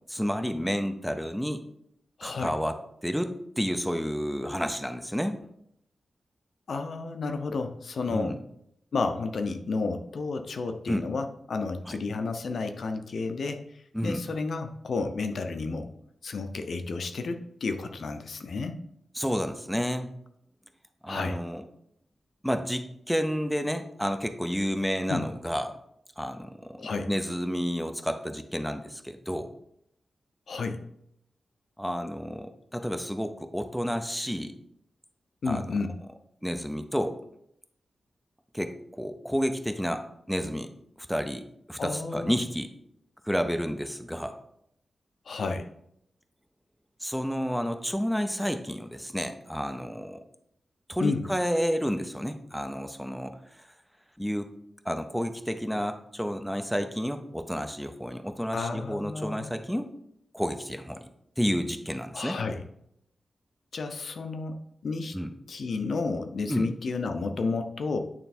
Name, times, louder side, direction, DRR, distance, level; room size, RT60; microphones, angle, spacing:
voice 1, 0.1-1.6 2.2-2.8 3.0-5.4 8.1-8.4 10.9-11.1 11.9-12.0 13.9-14.2 19.2-20.1 21.0-21.6 22.4-25.8 26.2-29.5 31.8-34.6 35.5-35.6 36.4-37.2 38.5-40.7 41.0-42.7 43.2-44.4 47.0-50.2 50.9-53.7 54.2-54.5 54.8-59.9 60.3-61.1 61.4-62.4 65.1-65.3 66.5-66.7, equal, ahead, 7 dB, 0.5 m, -30 dB
voice 2, 2.2-2.5 6.7-8.3 8.9-13.6 14.0-15.9 16.2-18.8 21.1-21.4 25.1-25.2 26.8-27.1 30.5-30.8 35.4-35.9 41.8-42.3 45.3-45.7 51.0-51.2 58.5-59.5 62.1-62.6 63.7-64.6 64.8-65.2 65.5-68.0, left 4 dB, 65° left, 7 dB, 0.6 m, -31 dB
8.9 x 3.4 x 4.2 m, 0.74 s
wide cardioid pair, 145°, 0 cm